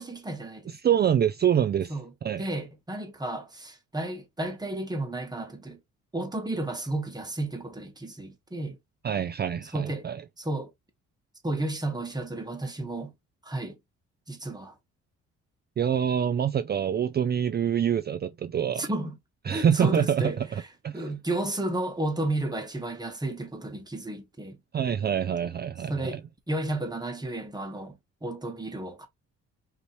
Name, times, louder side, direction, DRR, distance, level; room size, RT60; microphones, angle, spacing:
voice 1, 0.0-0.7 1.9-2.1 2.4-5.8 6.1-8.8 9.7-10.1 10.4-10.7 11.4-13.1 13.4-13.8 14.3-14.8 18.8-19.2 19.4-20.4 20.9-24.6 25.9-26.2 26.5-29.1, right 2 dB, 15° right, 1.3 m, -32 dB
voice 2, 0.7-1.9 2.2-2.4 9.0-10.2 15.8-18.9 19.5-21.1 24.7-26.2, right 8 dB, 35° right, 0.4 m, -26 dB
5.3 x 3.0 x 3.1 m
cardioid pair, 90°, 30 cm